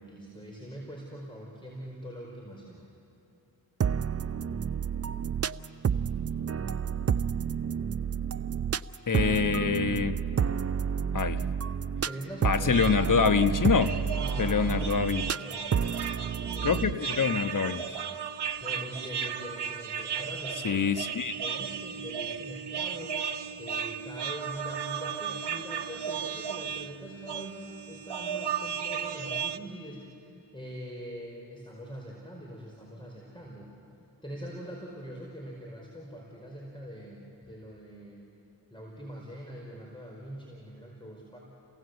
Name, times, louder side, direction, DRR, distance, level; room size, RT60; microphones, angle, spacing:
voice 1, 0.0-2.8 12.0-12.8 14.1-16.8 18.6-20.9 21.4-33.7 34.2-38.2 38.7-41.4, equal, 10° left, -2 dB, 4.7 m, -43 dB
sound 1, 3.8-16.9, right 7 dB, 35° right, 0.5 m, -30 dB
voice 2, 9.1-10.2 11.1-11.4 12.4-14.0 14.4-15.2 16.6-17.8 20.6-21.4, left 6 dB, 45° left, 10 dB, 1.2 m, -25 dB
sound 2, 12.7-29.6, right 7 dB, 65° right, 0.9 m, -35 dB
29.0 x 17.5 x 8.0 m, 2.7 s
cardioid pair, 45°, 45 cm